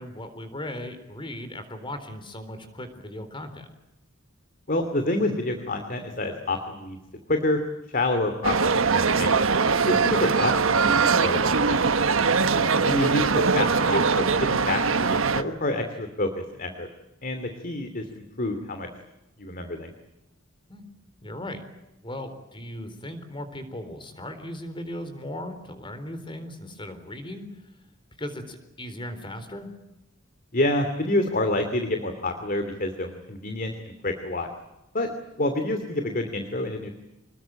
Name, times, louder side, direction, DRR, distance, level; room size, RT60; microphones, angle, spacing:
voice 1, 0.0-3.7 12.5-12.7 20.7-20.8 21.2-21.6 22.0-27.5 28.2-29.7, left 1 dB, 25° left, 10 dB, 3.9 m, -37 dB
voice 2, 4.7-7.0 7.3-7.6 7.9-9.4 9.9-11.9 12.8-16.9 17.2-18.9 19.4-19.9 30.5-33.7 34.0-34.5 34.9-35.1 35.4-36.9, left 2 dB, 45° left, 7 dB, 2.7 m, -28 dB
sound 1, 8.4-15.4, right 5 dB, 75° right, 1.3 m, -22 dB
26.5 x 21.0 x 9.0 m, 0.94 s
head